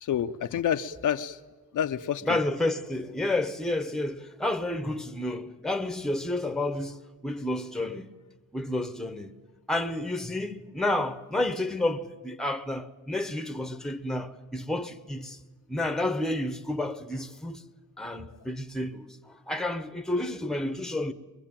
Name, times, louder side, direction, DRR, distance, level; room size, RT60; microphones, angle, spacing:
voice 1, 0.0-1.4 1.7-2.4 18.3-18.5, left 9 dB, 55° left, 0.7 m, -29 dB
voice 2, 2.2-8.1 8.5-9.3 9.7-15.4 15.7-17.6 18.0-21.1, left 1 dB, ahead, 1.0 m, -30 dB
22.5 x 21.5 x 8.9 m
cardioid pair, 115°, 37 cm